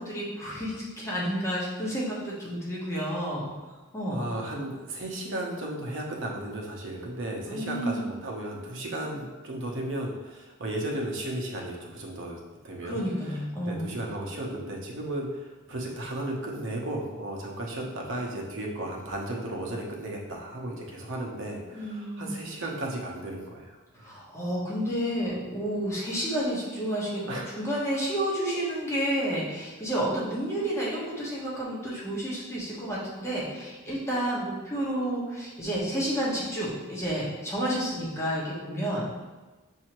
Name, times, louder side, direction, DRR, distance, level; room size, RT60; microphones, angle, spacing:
voice 1, 0.0-3.5 3.9-4.2 7.5-8.0 12.8-13.9 21.7-22.3 24.0-27.2 27.5-39.0, equal, 15° left, -6 dB, 1.1 m, -30 dB
voice 2, 4.1-12.4 12.6-24.1 27.2-27.6, right 1 dB, 60° right, -1 dB, 0.8 m, -35 dB
6.4 x 2.7 x 3.0 m, 1.2 s
head